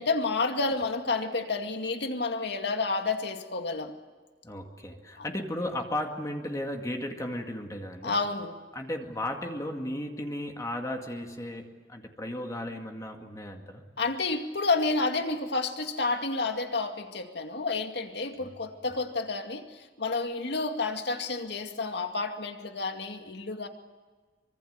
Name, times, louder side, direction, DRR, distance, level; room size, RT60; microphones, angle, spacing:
voice 1, 0.0-3.9 5.2-5.3 8.0-8.6 14.0-23.7, left 3 dB, 65° left, 5 dB, 2.3 m, -30 dB
voice 2, 4.4-8.1 8.7-13.8 18.4-18.5, left 1 dB, 20° left, 3 dB, 2.2 m, -35 dB
25.0 x 24.0 x 8.1 m, 1.4 s
head